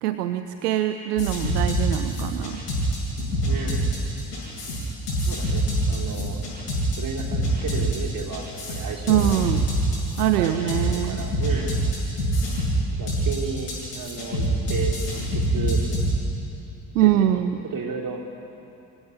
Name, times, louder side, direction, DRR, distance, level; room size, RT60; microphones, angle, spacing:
voice 1, 0.0-2.6 9.1-9.6 10.2-11.2 16.9-17.5, right 12 dB, 70° right, 10 dB, 0.8 m, -23 dB
sound 1, 1.2-16.1, right 1 dB, 80° left, 7.2 m, -25 dB
voice 2, 3.5-3.9 5.3-6.4 7.0-9.4 10.4-11.8 12.9-15.8 17.0-18.2, right 5 dB, 45° right, 1 dB, 3.6 m, -33 dB
25.5 x 16.0 x 9.9 m, 2.8 s
figure-of-eight pair, 45°, 48 cm